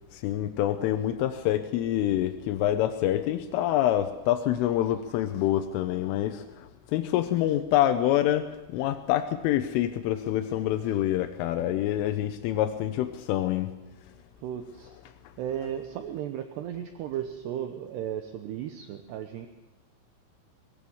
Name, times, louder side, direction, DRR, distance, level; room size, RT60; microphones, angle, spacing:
voice 1, 0.1-13.7, left 12 dB, 85° left, 8 dB, 3.4 m, -26 dB
voice 2, 14.4-14.9 15.4-19.5, right 10 dB, 75° right, 8 dB, 2.7 m, -35 dB
22.5 x 18.5 x 7.2 m, 0.99 s
omnidirectional pair, 5.6 m